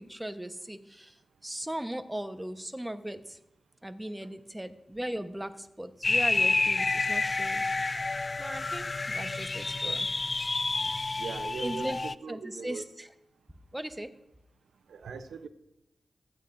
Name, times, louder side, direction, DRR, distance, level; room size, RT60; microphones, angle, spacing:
voice 1, 0.0-3.4 3.8-7.7 8.4-10.1 11.6-12.0 12.3-13.1 13.7-14.1, right 1 dB, 10° right, 9 dB, 1.1 m, -38 dB
sound 1, 6.0-12.1, left 3 dB, 45° left, 0.3 m, -29 dB
voice 2, 10.8-12.9 14.9-15.5, right 5 dB, 85° right, 10 dB, 0.7 m, -40 dB
26.5 x 9.1 x 2.6 m, 0.85 s
cardioid pair, 40°, 0 cm